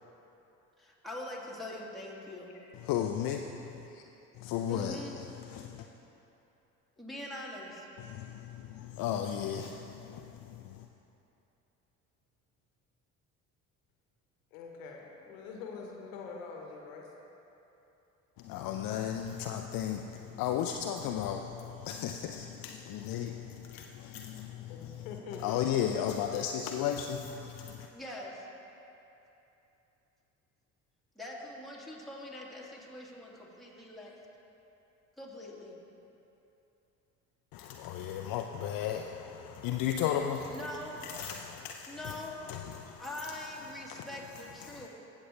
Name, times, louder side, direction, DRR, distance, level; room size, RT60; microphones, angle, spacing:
voice 1, 0.8-2.5 4.7-5.2 7.0-7.9 27.9-28.5 31.2-34.1 35.2-35.8 40.5-41.1 41.9-42.4 43.0-44.9, left 1 dB, ahead, -5 dB, 2.3 m, -43 dB
voice 2, 2.7-3.9 4.3-5.9 8.0-10.9 18.4-25.1 25.4-27.9 37.5-43.4 43.7-44.1 44.6-44.9, left 9 dB, 60° left, 4 dB, 0.5 m, -35 dB
voice 3, 14.5-17.1 23.7-23.8 24.7-25.6, left 5 dB, 80° left, 1 dB, 1.1 m, -45 dB
15.5 x 7.2 x 3.3 m, 2.9 s
hypercardioid pair, 55°, 40 cm